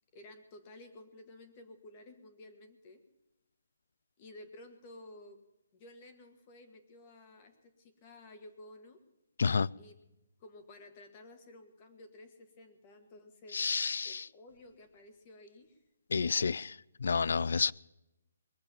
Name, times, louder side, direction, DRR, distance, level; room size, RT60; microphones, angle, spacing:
voice 1, 0.1-3.0 4.2-5.4 5.7-9.0 9.8-10.0 10.4-13.6 14.0-15.8, left 1 dB, 25° left, 1.8 m, -53 dB
voice 2, 9.4-9.7 13.5-14.3 16.1-17.7, left 5 dB, 70° left, 0.4 m, -30 dB
21.5 x 7.8 x 7.1 m
hypercardioid pair, 170°, 0 cm